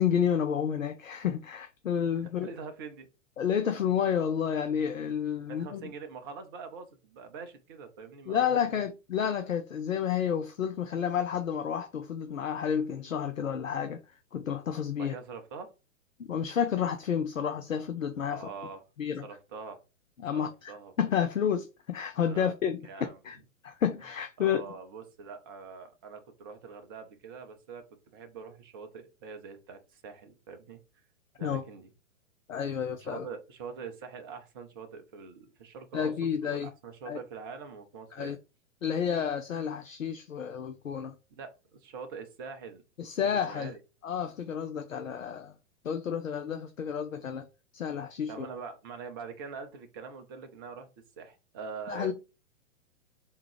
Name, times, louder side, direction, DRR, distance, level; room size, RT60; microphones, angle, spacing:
voice 1, 0.0-2.5 3.4-5.8 8.3-15.1 16.3-18.5 19.0-19.2 20.2-20.7 21.0-22.8 23.2-23.4 23.6-24.6 31.4-31.6 32.5-33.3 35.9-36.7 37.1-37.2 38.1-38.4 38.8-41.1 43.0-43.7 44.0-45.5 45.8-47.5 47.7-48.5 51.9-52.1, left 8 dB, 75° left, 0.6 m, -30 dB
voice 2, 2.2-3.1 5.5-8.8 15.0-15.7 18.3-18.8 19.2-19.8 20.3-20.9 22.3-22.5 22.8-23.2 24.4-27.8 28.1-30.8 31.4-31.9 33.0-36.1 36.4-38.3 41.4-42.8 43.2-43.8 48.3-50.9 51.2-52.1, right 5 dB, 20° right, 0.4 m, -44 dB
3.6 x 2.9 x 4.6 m
figure-of-eight pair, 110°, 40 cm